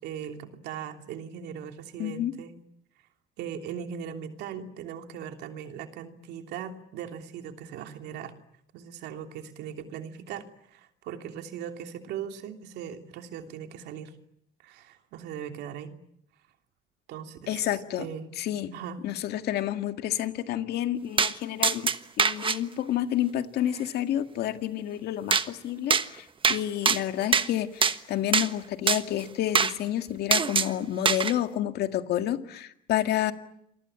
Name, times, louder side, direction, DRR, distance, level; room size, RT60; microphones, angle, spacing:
voice 1, 0.0-2.6 3.4-8.3 8.7-14.1 14.6-15.9 17.1-18.3 18.7-19.0, right 8 dB, 80° right, 6 dB, 3.1 m, -39 dB
voice 2, 2.0-2.3 17.5-18.1 18.4-18.7 19.0-21.9 22.2-33.3, left 12 dB, 70° left, 8 dB, 2.0 m, -29 dB
sound 1, 21.2-21.3 21.6-22.6 25.3-25.5 25.9-26.1 26.4-26.6 26.8-27.5 27.8-28.0 28.3-28.5 28.9-29.0 29.5-29.7 30.3-30.7 31.0-31.3, right 5 dB, 30° right, 1.3 m, -23 dB
28.5 x 22.5 x 8.9 m, 0.76 s
cardioid pair, 110°, 17 cm